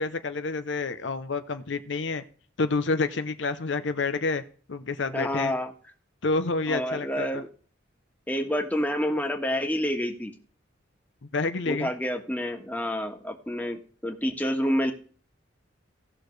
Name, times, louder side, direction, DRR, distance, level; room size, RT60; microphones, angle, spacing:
voice 1, 0.0-2.2 2.6-4.4 4.7-5.5 6.2-7.4 11.3-11.9, left 3 dB, 65° left, 9 dB, 0.7 m, -28 dB
voice 2, 5.1-5.7 6.7-7.5 8.3-10.3 11.7-14.9, equal, 10° left, 3 dB, 1.5 m, -28 dB
17.5 x 6.4 x 3.3 m, 0.43 s
head